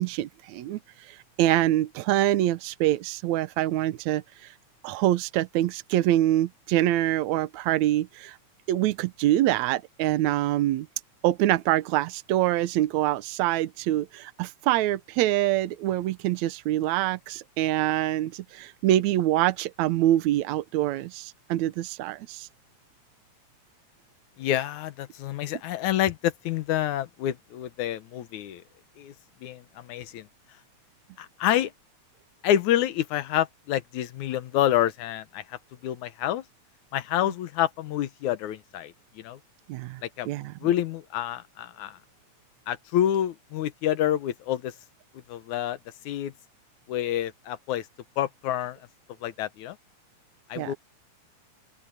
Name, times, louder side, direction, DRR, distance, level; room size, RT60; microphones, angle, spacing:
voice 1, 0.0-4.5 4.8-8.4 8.7-10.9 11.2-22.5 39.7-40.0 40.3-40.5 50.6-50.7, right 14 dB, 80° right, 2.1 m, -25 dB
voice 2, 24.4-28.6 29.0-29.1 29.4-30.3 31.2-31.7 32.4-36.4 36.9-39.4 40.0-40.3 40.6-42.0 42.7-44.7 45.3-45.8 46.1-46.3 46.9-47.9 48.2-48.8 49.2-49.8 50.5-50.8, left 12 dB, 85° left, 2.4 m, -28 dB
open air
omnidirectional pair, 3.3 m